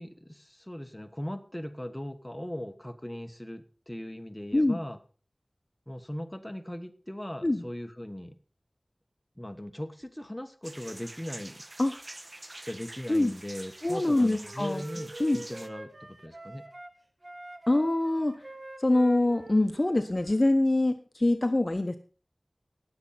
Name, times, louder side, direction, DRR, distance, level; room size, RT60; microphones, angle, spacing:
voice 1, 0.0-5.0 5.9-8.4 9.4-11.6 12.6-16.7, left 1 dB, 15° left, 7 dB, 1.3 m, -39 dB
sound 1, 10.6-15.7, right 1 dB, 45° right, 1.0 m, -46 dB
voice 2, 13.8-14.8 15.2-15.4 17.7-18.4 18.8-22.0, left 2 dB, 40° left, 7 dB, 0.9 m, -24 dB
Wind instrument woodwind instrument, 14.0-16.9 17.2-20.6, right 2 dB, 65° right, 2.3 m, -46 dB
19.0 x 7.2 x 4.3 m, 0.38 s
wide cardioid pair, 50°, 0 cm